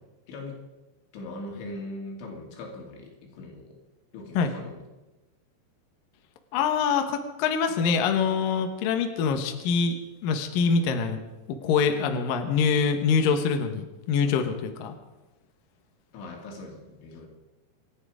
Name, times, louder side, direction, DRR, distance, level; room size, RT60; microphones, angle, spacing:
voice 1, 0.3-0.6 1.1-3.8 4.1-4.8 16.1-17.3, left 2 dB, 85° left, 1 dB, 5.0 m, -40 dB
voice 2, 6.5-9.9 10.2-11.2 11.5-14.9, left 6 dB, 65° left, 6 dB, 2.5 m, -24 dB
27.5 x 9.4 x 4.9 m, 1.1 s
omnidirectional pair, 5.2 m